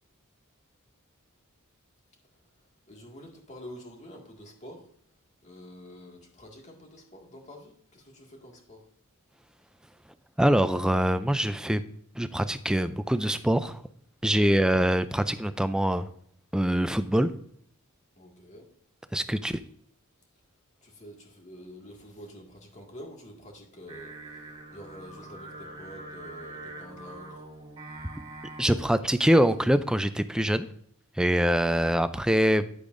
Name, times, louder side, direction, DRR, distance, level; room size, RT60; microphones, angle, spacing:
voice 1, 2.9-4.9 5.4-8.9 18.2-18.7 20.8-27.4 31.2-31.4, equal, 30° left, 2.0 m, -47 dB
voice 2, 10.4-11.8 12.2-13.8 14.2-16.1 16.5-17.3 19.1-19.5 28.6-30.7 31.2-32.7, equal, 5° right, 0.4 m, -24 dB
Singing, 23.9-29.0, right 2 dB, 20° right, 3.4 m, -44 dB
9.9 x 8.4 x 2.6 m
head